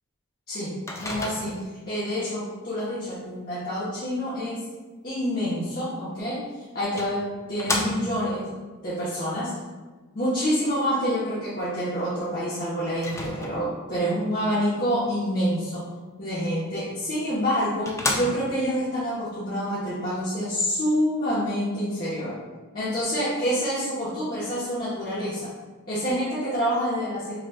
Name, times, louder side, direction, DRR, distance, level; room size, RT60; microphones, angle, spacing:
Microwave oven, 0.9-1.8 6.1-6.2 7.0-8.3 13.0-13.9 17.0-17.1 17.5-17.6 17.9-18.7, left 2 dB, 15° left, 0.3 m, -31 dB
voice 1, 1.0-1.6 1.9-4.7 5.0-6.4 6.7-8.5 8.8-9.6 10.1-15.8 16.2-22.3 22.7-25.5 25.9-27.4, equal, 45° left, -11 dB, 1.0 m, -27 dB
5.8 x 2.4 x 2.3 m, 1.3 s
head